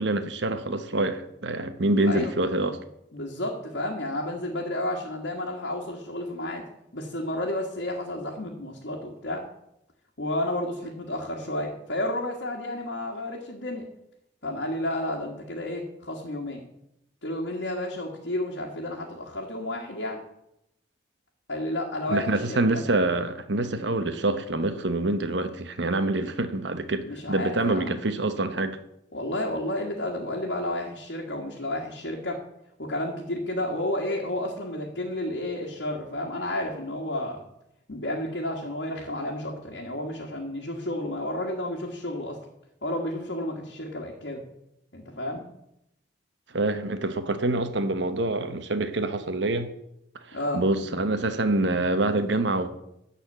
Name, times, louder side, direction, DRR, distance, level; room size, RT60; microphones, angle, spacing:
voice 1, 0.0-2.8 22.1-28.8 46.5-49.7 50.3-52.7, right 2 dB, 70° right, 1.0 m, -26 dB
voice 2, 3.1-6.6 6.9-9.5 10.2-13.9 14.4-16.6 17.2-20.2 21.5-22.8 27.0-28.1 29.1-32.4 32.8-37.4 37.9-42.4 42.8-44.4 44.9-45.4 50.3-50.6, left 1 dB, 70° left, 1.6 m, -31 dB
12.0 x 4.3 x 8.2 m
head